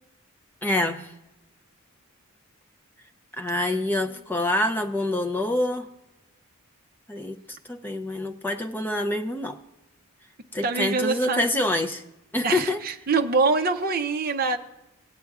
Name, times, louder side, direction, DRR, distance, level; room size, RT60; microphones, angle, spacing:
voice 1, 0.6-1.1 3.4-5.9 7.1-9.6 10.5-12.0 12.3-12.8, left 1 dB, 10° left, 5 dB, 0.5 m, -26 dB
voice 2, 10.6-11.4 12.4-14.6, right 4 dB, 40° right, 6 dB, 0.6 m, -24 dB
19.0 x 8.8 x 2.4 m, 0.96 s
head